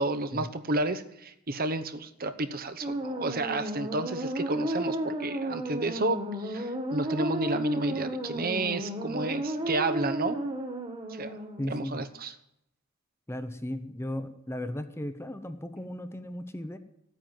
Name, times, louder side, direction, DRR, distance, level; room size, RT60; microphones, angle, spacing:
voice 1, 0.0-10.4 11.1-11.4 11.7-12.3, right 2 dB, 40° right, 10 dB, 0.9 m, -31 dB
sound 1, 2.8-11.7, right 1 dB, 25° right, 1.9 m, -33 dB
voice 2, 11.6-12.0 13.3-16.8, left 1 dB, 10° left, 10 dB, 0.8 m, -36 dB
15.0 x 9.3 x 9.3 m, 0.80 s
head